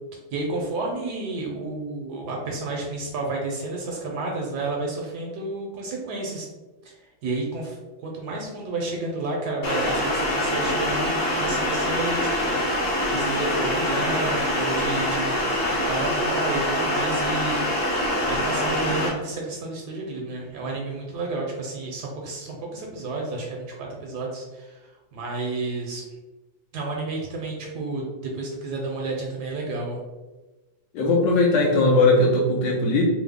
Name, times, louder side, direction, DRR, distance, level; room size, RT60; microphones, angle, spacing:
voice 1, 0.3-6.5 6.8-7.0 7.2-15.4 15.7-17.6 18.2-26.0 26.7-30.0, right 3 dB, 70° right, -1 dB, 1.0 m, -31 dB
sound 1, 9.6-19.1, left 1 dB, 60° left, 1.4 m, -24 dB
voice 2, 30.9-33.0, left 2 dB, 75° left, -3 dB, 1.3 m, -19 dB
3.4 x 2.0 x 3.4 m, 1.2 s
omnidirectional pair, 2.0 m